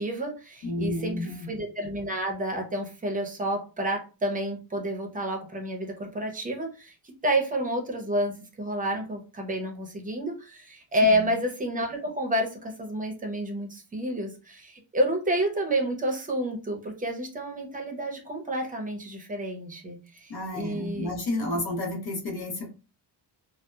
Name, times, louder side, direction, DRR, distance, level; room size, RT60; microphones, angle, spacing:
voice 1, 0.0-6.9 7.2-21.1, right 1 dB, 20° right, 2 dB, 0.6 m, -29 dB
voice 2, 0.6-1.5 11.1-11.3 20.3-22.7, left 1 dB, 60° left, 1 dB, 1.0 m, -31 dB
2.7 x 2.1 x 2.2 m, 0.33 s
cardioid pair, 125°, 41 cm